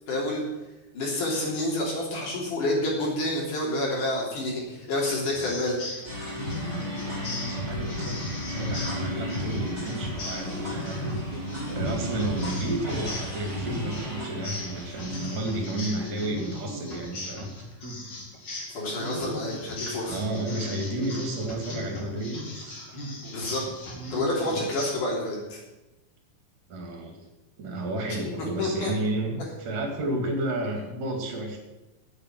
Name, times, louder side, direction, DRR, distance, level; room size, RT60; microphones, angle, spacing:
voice 1, 0.1-0.4 0.9-5.8 18.7-20.2 23.2-23.7 24.1-25.6 28.1-28.9, left 1 dB, 60° left, -3 dB, 4.8 m, -28 dB
sound 1, 5.3-24.9, left 1 dB, 35° left, 2.7 m, -38 dB
sound 2, 6.0-16.1, equal, 5° right, 5.2 m, -34 dB
voice 2, 7.2-8.2 8.5-11.2 11.7-17.5 20.1-22.8 26.7-27.2 27.6-31.6, right 1 dB, 65° right, 2 dB, 3.7 m, -31 dB
8.8 x 8.6 x 9.2 m, 1.0 s
omnidirectional pair, 4.1 m